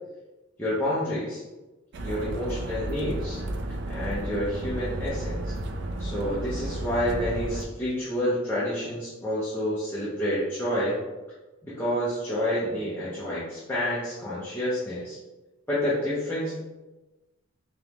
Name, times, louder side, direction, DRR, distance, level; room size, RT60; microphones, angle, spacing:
voice 1, 0.6-1.4 2.0-3.4 3.9-5.5 6.0-11.0 11.6-15.2 15.7-16.6, equal, 10° left, -10 dB, 0.7 m, -29 dB
sound 1, 1.9-7.7, right 1 dB, 55° right, 0.4 m, -32 dB
3.7 x 3.0 x 3.4 m, 1.1 s
head